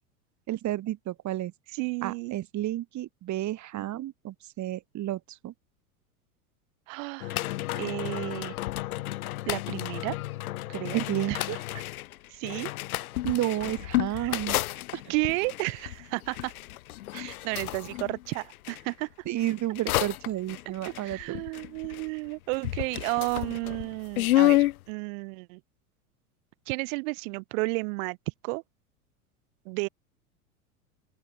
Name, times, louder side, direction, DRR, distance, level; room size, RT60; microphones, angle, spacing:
voice 1, 0.5-1.5 2.0-5.5 10.9-11.6 13.2-14.6 14.9-15.1 19.2-21.4, right 14 dB, 40° right, 3.0 m, -31 dB
voice 2, 1.8-2.4 3.7-4.0 6.9-7.4 7.8-8.5 9.5-10.2 10.7-11.0 11.3-11.4 12.3-12.7 14.1-14.4 15.1-16.5 17.1-19.1 20.6-25.6 26.7-28.2 28.4-28.6 29.6-29.9, right 31 dB, 60° right, 3.1 m, -32 dB
sound 1, 7.2-18.8 19.4-22.3 22.5-24.8, left 16 dB, 70° left, 7.0 m, -31 dB
open air
hypercardioid pair, 95°, 44 cm